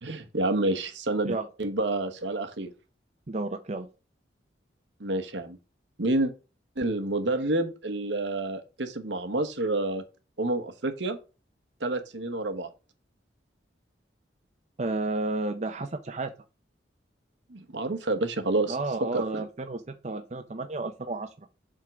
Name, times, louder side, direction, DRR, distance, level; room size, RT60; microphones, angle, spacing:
voice 1, 0.0-2.7 5.0-5.6 6.0-6.3 6.8-10.0 10.4-11.2 11.8-12.7 17.5-18.8 19.1-19.4, right 2 dB, 75° right, 7 dB, 1.1 m, -29 dB
voice 2, 3.3-3.9 14.8-16.3 18.7-21.3, right 2 dB, 40° right, 6 dB, 0.6 m, -31 dB
7.6 x 3.7 x 5.9 m, 0.32 s
head